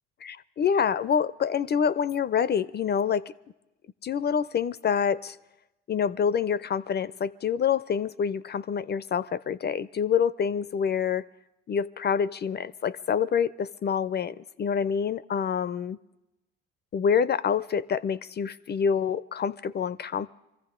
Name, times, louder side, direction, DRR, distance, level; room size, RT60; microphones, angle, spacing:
voice 1, 0.2-3.3 4.0-5.4 5.9-11.3 11.7-16.0 16.9-20.3, left 7 dB, 35° left, 18 dB, 0.5 m, -27 dB
24.5 x 14.5 x 3.7 m, 0.97 s
hypercardioid pair, 55°, 30 cm